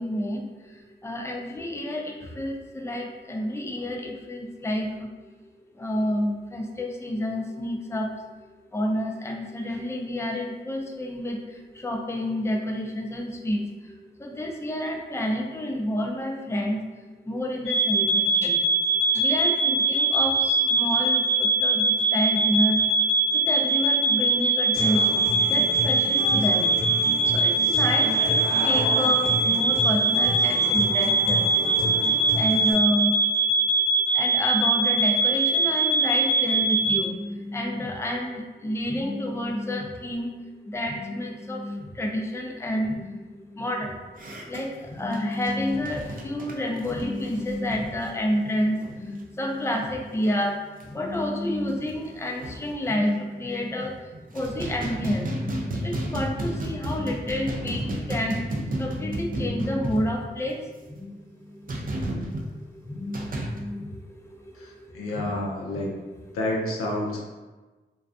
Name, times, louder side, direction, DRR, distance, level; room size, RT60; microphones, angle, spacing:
voice 1, 0.0-5.1 5.7-8.1 8.7-18.6 19.1-22.8 23.3-26.8 27.2-31.5 32.3-33.2 34.1-40.4 40.6-44.0 44.5-58.4 58.8-61.9 62.8-66.0 67.0-67.1, left 1 dB, 10° left, 1 dB, 0.5 m, -29 dB
sound 1, 17.6-37.0, right 2 dB, 80° right, 0.8 m, -22 dB
Human voice / Acoustic guitar, 24.7-32.7, equal, 45° left, 0.9 m, -31 dB
sound 2, 44.2-49.2 49.5-49.7 50.0-50.4 50.8-50.9 51.3-51.4 51.7-52.8 53.4-53.9 54.1-60.6 61.7-62.5 63.1-63.6, right 1 dB, 40° right, 0.5 m, -33 dB
voice 2, 64.5-65.9 66.3-67.2, left 1 dB, 85° left, -2 dB, 0.5 m, -29 dB
2.4 x 2.2 x 2.4 m, 1.2 s
supercardioid pair, 40°, 21 cm